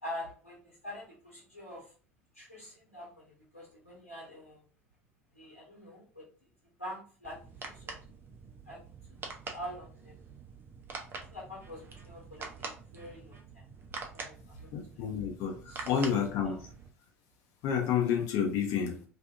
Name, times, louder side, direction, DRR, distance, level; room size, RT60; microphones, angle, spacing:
voice 1, 0.0-1.9 2.3-4.6 5.3-6.5 6.8-7.4 7.7-8.0 8.6-8.8 9.2-10.1 11.3-13.6 14.0-14.7 15.7-16.2 16.4-16.5, left 1 dB, 85° left, 1.3 m, -45 dB
sound 1, 7.2-16.9, right 4 dB, 30° right, 0.6 m, -45 dB
voice 2, 14.7-16.7 17.6-19.0, left 7 dB, 50° left, 0.8 m, -30 dB
2.6 x 2.5 x 2.5 m
figure-of-eight pair, 70°, 7 cm